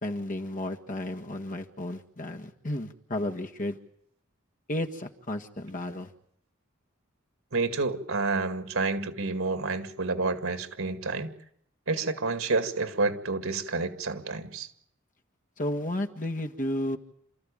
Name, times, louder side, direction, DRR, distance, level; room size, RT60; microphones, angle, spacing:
voice 1, 0.0-3.8 4.7-6.1 15.6-17.0, left 1 dB, 40° left, 4 dB, 1.7 m, -33 dB
voice 2, 7.5-11.3 11.9-14.7, right 3 dB, 85° right, 10 dB, 2.2 m, -29 dB
29.5 x 14.0 x 9.0 m, 0.73 s
head